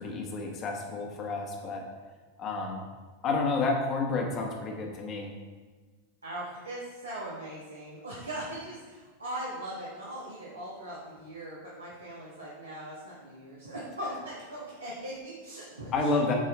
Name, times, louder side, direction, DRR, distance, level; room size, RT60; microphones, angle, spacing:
voice 1, 0.0-1.8 2.4-2.8 3.2-5.3 15.9-16.3, left 3 dB, 35° left, 1 dB, 1.5 m, -30 dB
voice 2, 6.2-16.3, right 1 dB, 80° right, -7 dB, 1.5 m, -40 dB
8.0 x 4.7 x 4.3 m, 1.4 s
figure-of-eight pair, 90°, 0 cm